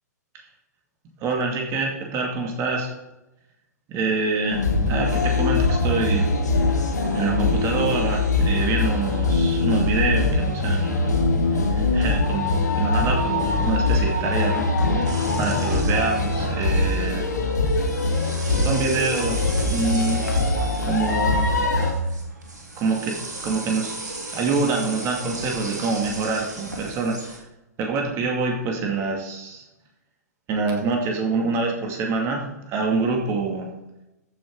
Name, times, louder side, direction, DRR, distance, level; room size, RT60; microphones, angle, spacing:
voice 1, 1.2-2.9 3.9-6.3 7.1-11.1 11.5-14.6 15.4-17.2 18.6-20.2 20.8-21.5 22.8-23.2 23.4-27.4 27.8-29.6 30.5-33.7, right 4 dB, 30° right, 1 dB, 2.4 m, -26 dB
sound 1, 4.5-21.9, left 3 dB, 80° left, 2.2 m, -22 dB
sound 2, 15.1-16.8 17.6-27.4, right 2 dB, 85° right, 2.7 m, -36 dB
14.5 x 6.5 x 4.8 m, 0.95 s
figure-of-eight pair, 110°, 9 cm